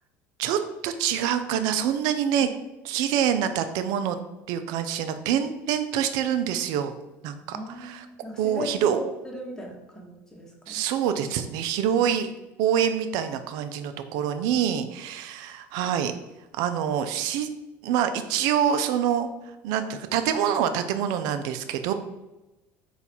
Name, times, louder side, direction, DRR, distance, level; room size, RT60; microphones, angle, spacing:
voice 1, 0.4-2.5 2.8-4.2 4.5-6.9 7.2-8.1 8.4-9.0 10.7-12.3 12.6-16.1 16.6-17.5 17.8-19.3 19.6-21.9, right 9 dB, 70° right, 9 dB, 0.4 m, -26 dB
voice 2, 7.5-10.8, left 1 dB, 10° left, -1 dB, 1.0 m, -38 dB
3.9 x 2.4 x 4.3 m, 1.0 s
supercardioid pair, 95°, 7 cm